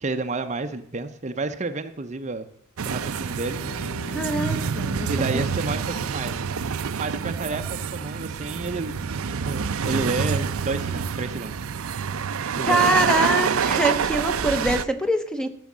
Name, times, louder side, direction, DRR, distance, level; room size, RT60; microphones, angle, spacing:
voice 1, 0.0-2.5 2.9-3.6 5.1-6.4 7.0-8.9 9.3-11.5 12.6-13.1, right 3 dB, 30° right, 9 dB, 0.6 m, -30 dB
sound 1, 2.8-14.8, right 6 dB, 75° right, 0.5 m, -27 dB
sound 2, 3.4-11.1, equal, 20° left, 4.0 m, -45 dB
voice 2, 4.1-5.4 12.6-15.5, right 1 dB, 5° left, 8 dB, 0.8 m, -24 dB
14.0 x 6.3 x 7.3 m, 0.70 s
head